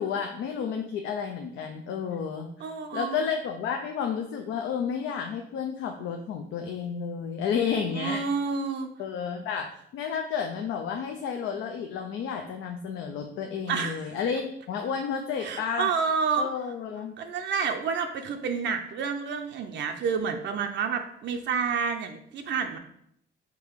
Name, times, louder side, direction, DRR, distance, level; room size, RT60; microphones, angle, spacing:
voice 1, 0.0-8.2 9.0-15.9 16.4-17.1, left 6 dB, 80° left, 4 dB, 0.5 m, -31 dB
voice 2, 2.6-3.2 8.0-8.9 13.7-14.1 15.4-16.5 17.2-22.8, right 6 dB, 65° right, 5 dB, 0.5 m, -29 dB
3.7 x 2.8 x 4.5 m, 0.70 s
cardioid pair, 90°, 20 cm